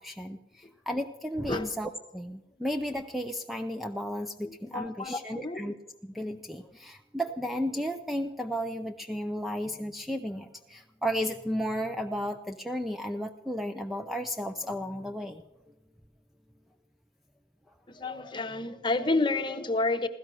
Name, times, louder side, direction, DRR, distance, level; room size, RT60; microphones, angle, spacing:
voice 1, 0.0-5.7 6.0-15.4, equal, ahead, 5 dB, 0.5 m, -33 dB
voice 2, 4.4-5.8 17.9-20.1, left 3 dB, 25° left, 9 dB, 0.9 m, -30 dB
16.0 x 13.5 x 6.2 m, 0.99 s
head